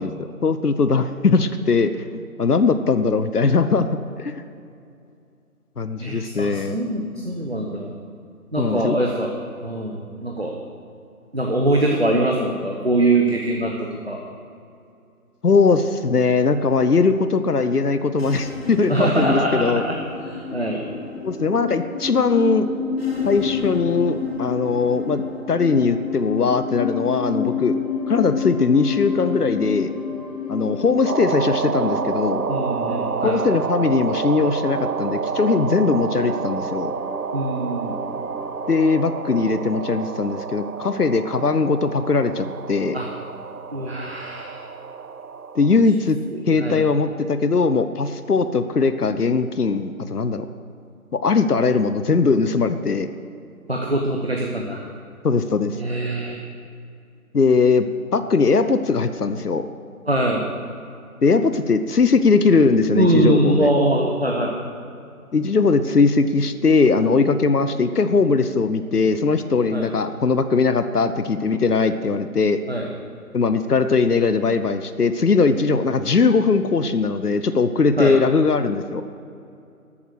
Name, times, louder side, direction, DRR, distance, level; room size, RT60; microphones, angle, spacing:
voice 1, 0.0-2.1 2.4-3.9 4.2-4.4 5.8-6.8 8.6-9.0 15.4-19.8 21.2-22.7 23.3-27.8 28.1-29.9 30.5-32.5 33.2-36.9 38.7-43.0 45.5-46.2 46.5-50.5 51.1-53.1 55.2-55.8 57.3-59.7 61.2-63.7 65.3-72.6 73.3-79.0, left 4 dB, 85° left, 11 dB, 0.9 m, -20 dB
voice 2, 6.0-7.9 8.5-9.3 9.6-10.6 11.3-13.7 14.1-14.2 18.9-20.0 20.3-20.9 32.5-33.4 37.3-38.0 42.9-43.1 43.7-44.6 46.3-46.8 53.7-54.8 55.8-56.3 60.1-60.5 62.9-64.6 69.7-69.9 72.7-72.9 78.0-78.1, right 1 dB, 45° right, 0 dB, 1.0 m, -22 dB
sound 1, 18.1-33.6, left 6 dB, 40° left, 1.3 m, -29 dB
sound 2, 26.0-40.5, equal, 65° left, 3.8 m, -40 dB
sound 3, 31.1-45.8, right 5 dB, 80° right, 0.7 m, -29 dB
13.5 x 9.0 x 6.3 m, 2.6 s
figure-of-eight pair, 180°, 45 cm